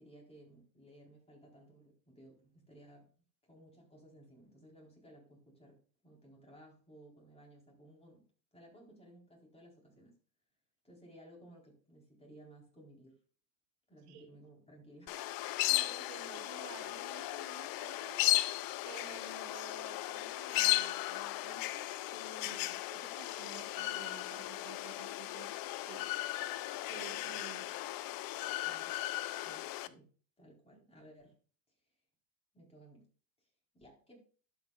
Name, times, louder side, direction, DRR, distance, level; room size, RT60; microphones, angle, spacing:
voice 1, 0.0-3.1 3.4-10.2 10.8-13.2 13.9-15.1 22.4-22.8 28.6-29.0 29.4-31.3 32.5-33.1 33.7-34.2, right 1 dB, 15° left, -2 dB, 4.3 m, -58 dB
sound 1, 15.1-29.9, left 17 dB, 50° left, 0.6 m, -36 dB
voice 2, 15.6-18.2 18.8-26.1 26.9-27.8, right 7 dB, 90° right, 6 dB, 1.6 m, -53 dB
12.0 x 6.3 x 2.5 m, 0.40 s
supercardioid pair, 105°, 45 cm